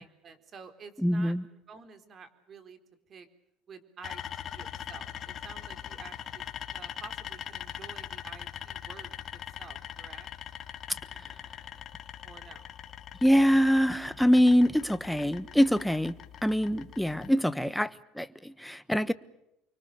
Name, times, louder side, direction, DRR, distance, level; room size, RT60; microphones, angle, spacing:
voice 1, 0.0-1.3 1.7-2.8 3.1-3.3 3.7-6.4 6.7-10.3 12.2-12.8 17.6-17.7, right 5 dB, 35° right, 4.0 m, -50 dB
voice 2, 1.0-1.4 13.2-16.2 16.4-19.1, equal, ahead, 1.2 m, -24 dB
sound 1, 4.0-17.3, left 9 dB, 40° left, 3.1 m, -42 dB
29.5 x 24.5 x 6.8 m
supercardioid pair, 120°, 0 cm